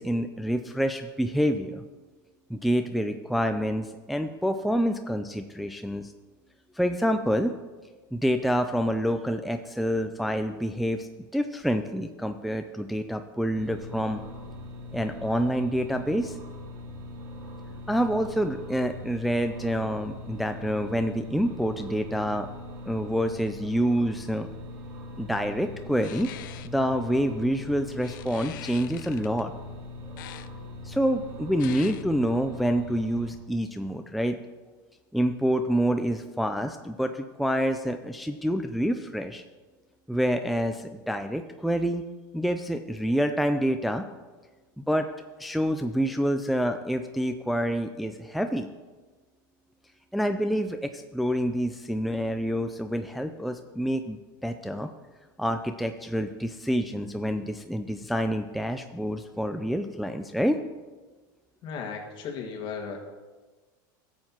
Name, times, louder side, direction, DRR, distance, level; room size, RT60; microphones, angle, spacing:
voice 1, 0.0-1.8 2.5-6.1 6.7-7.6 8.1-14.2 14.9-16.4 17.9-22.5 22.9-24.5 25.2-26.3 26.6-29.5 30.8-34.4 35.1-39.4 40.1-42.0 42.3-44.0 44.8-45.1 45.4-48.7 50.1-54.2 54.4-54.9 55.4-60.6, equal, ahead, 6 dB, 0.4 m, -27 dB
sound 1, 13.5-33.3, left 1 dB, 80° right, 1.6 m, -41 dB
sound 2, 26.0-26.7 28.0-29.4 30.2-30.5 31.6-32.0, left 14 dB, 80° left, 0.4 m, -43 dB
voice 2, 61.6-63.0, left 6 dB, 50° left, 2 dB, 1.8 m, -35 dB
13.5 x 7.8 x 2.9 m, 1.3 s
supercardioid pair, 115°, 11 cm